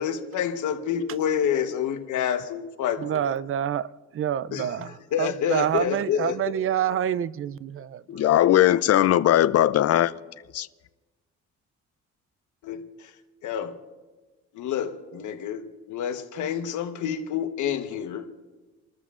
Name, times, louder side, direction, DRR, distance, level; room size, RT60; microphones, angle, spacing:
voice 1, 0.0-3.3 4.5-4.7 5.1-6.4 12.6-12.8 13.4-13.8 14.5-18.3, left 8 dB, 75° left, 1.2 m, -28 dB
voice 2, 3.0-8.4, right 10 dB, 45° right, 0.4 m, -28 dB
voice 3, 8.1-10.1 10.5-10.7, left 12 dB, 55° left, 0.5 m, -19 dB
29.0 x 13.0 x 2.5 m
cardioid pair, 90°, 30 cm